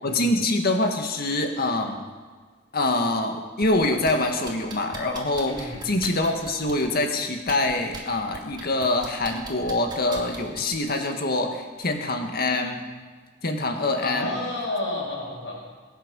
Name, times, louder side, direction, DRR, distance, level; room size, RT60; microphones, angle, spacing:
voice 1, 0.0-2.0 2.7-12.9 13.4-14.3, left 2 dB, 55° left, 4 dB, 1.9 m, -25 dB
sound 1, 3.6-4.1 4.5-6.9 7.4-8.0 8.3-10.8 11.8-11.9, right 2 dB, 25° right, 2.4 m, -39 dB
voice 2, 5.4-5.8 14.0-15.6, left 2 dB, 75° left, -8 dB, 5.7 m, -30 dB
22.0 x 9.3 x 6.4 m, 1.5 s
head